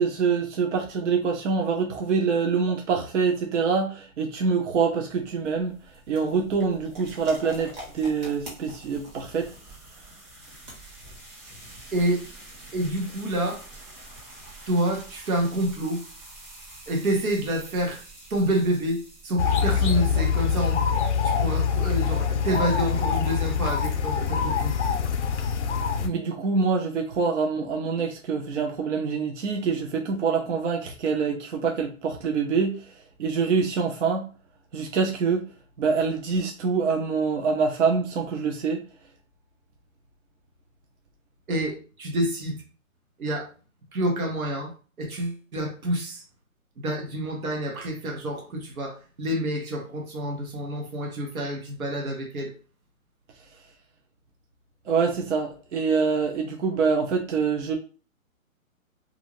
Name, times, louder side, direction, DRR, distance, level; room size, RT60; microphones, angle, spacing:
voice 1, 0.0-9.5 25.4-25.5 26.0-34.3 34.7-35.5 35.8-38.8 54.9-57.7, right 5 dB, 60° right, 0.6 m, -25 dB
sound 1, 5.1-19.9, right 1 dB, 30° right, 1.1 m, -46 dB
voice 2, 11.9-12.3 12.7-13.6 14.7-16.0 16.9-18.0 18.3-20.8 21.2-24.7 41.5-42.6 43.2-43.5 43.9-44.7 45.0-46.2 46.8-52.5, right 1 dB, 90° right, 1.1 m, -28 dB
sound 2, 19.4-26.1, left 6 dB, 55° left, 0.5 m, -24 dB
2.6 x 2.5 x 3.0 m
hypercardioid pair, 160°, 42 cm